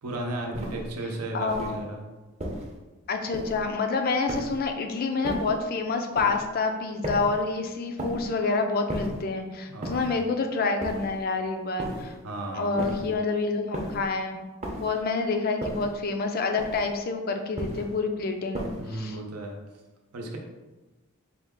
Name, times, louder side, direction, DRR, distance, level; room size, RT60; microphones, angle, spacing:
voice 1, 0.0-2.0 9.7-10.1 12.2-13.1 18.8-19.6 20.1-20.4, right 1 dB, 90° right, 1 dB, 0.7 m, -34 dB
sound 1, 0.5-0.9 1.5-1.8 2.4-2.8 3.3-3.7 4.3-4.7 5.2-5.6 6.1-6.5 7.0-7.4 8.0-8.4 8.9-9.3 9.8-10.2 10.8-11.2 11.8-12.2 12.8-13.2 13.7-14.1 14.6-15.0 15.6-16.0 16.6-17.0 17.6-18.0 18.5-19.0, equal, 30° right, 0.6 m, -35 dB
voice 2, 1.3-1.8 3.1-12.2 12.5-14.4 14.8-19.2, left 4 dB, 40° left, 5 dB, 0.3 m, -28 dB
4.3 x 2.3 x 3.6 m, 1.2 s
head